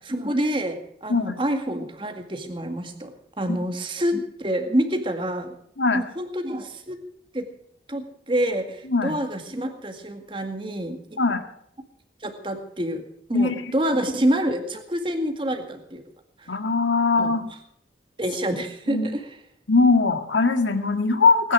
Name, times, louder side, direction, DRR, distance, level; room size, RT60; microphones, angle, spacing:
voice 1, 0.1-5.6 5.9-7.0 7.3-7.5 7.9-11.2 12.2-13.0 13.3-16.0 16.4-16.5 17.2-17.3 18.2-19.4, right 1 dB, 25° right, 6 dB, 2.0 m, -27 dB
voice 2, 1.1-1.4 3.5-3.6 5.8-6.0 8.9-9.2 11.2-11.4 13.3-13.7 16.5-17.4 18.9-19.1 19.7-21.5, left 3 dB, 85° left, 7 dB, 1.8 m, -21 dB
19.5 x 10.0 x 6.2 m, 0.67 s
head